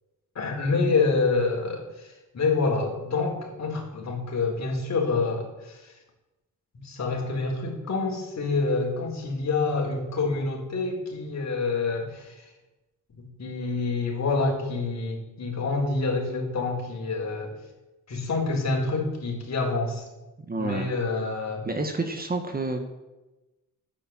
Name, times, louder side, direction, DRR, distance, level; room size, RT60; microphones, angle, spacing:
voice 1, 0.3-5.9 6.7-12.4 13.2-17.5 18.1-20.0 20.6-21.6, left 3 dB, 50° left, 0 dB, 4.5 m, -27 dB
voice 2, 20.5-20.9 21.6-22.8, right 3 dB, 25° right, 5 dB, 1.6 m, -29 dB
12.0 x 10.0 x 7.7 m, 1.1 s
cardioid pair, 115°, 34 cm